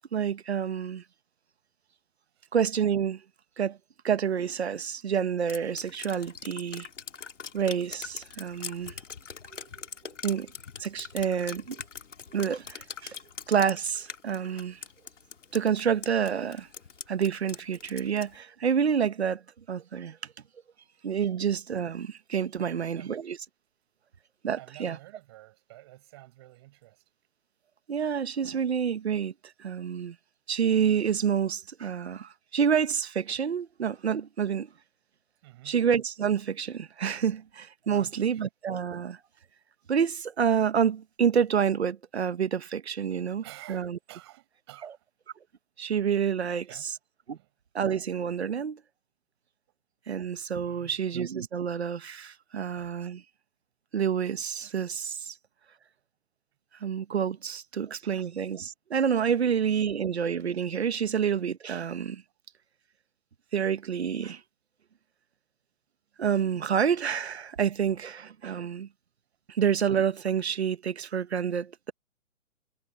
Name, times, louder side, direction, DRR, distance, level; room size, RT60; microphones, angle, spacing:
voice 1, 0.1-1.0 2.5-3.2 3.6-3.8 4.0-6.9 7.5-9.0 10.2-10.5 10.8-11.8 12.3-13.2 13.5-14.8 15.5-16.7 17.1-19.4 19.7-20.2 21.0-23.4 24.4-25.0 27.9-30.2 30.5-34.7 35.6-39.2 39.9-43.4 43.7-44.0 45.8-46.9 47.3-47.4 47.7-48.8 50.1-53.2 53.9-55.4 56.8-62.2 63.5-64.4 66.2-68.9 69.5-71.9, right 7 dB, 55° right, 1.3 m, -28 dB
Drip, 5.5-18.4, left 6 dB, 70° left, 3.1 m, -43 dB
voice 2, 22.5-23.4 24.5-27.0 35.4-35.8 37.8-38.4 43.2-45.1 46.4-46.9 47.3-47.5 50.6-51.0 58.0-58.3, right 18 dB, 20° right, 7.4 m, -51 dB
hypercardioid pair, 175°, 38 cm